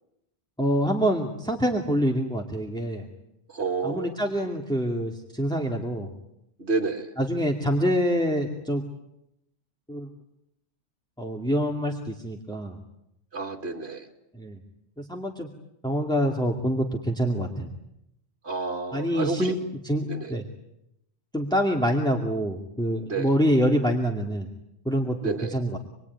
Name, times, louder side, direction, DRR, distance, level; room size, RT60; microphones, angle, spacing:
voice 1, 0.6-3.1 3.8-6.1 7.2-8.8 9.9-10.1 11.2-12.8 14.3-14.6 15.0-15.5 15.8-17.7 18.9-19.6 19.8-20.4 21.3-24.5 24.9-25.8, equal, 5° left, 1 dB, 2.4 m, -26 dB
voice 2, 3.5-4.2 6.6-7.1 13.3-14.1 18.4-19.6 20.1-20.3 23.1-23.3 25.2-25.6, right 4 dB, 75° right, 2 dB, 2.7 m, -30 dB
27.5 x 22.0 x 9.6 m, 0.84 s
omnidirectional pair, 1.1 m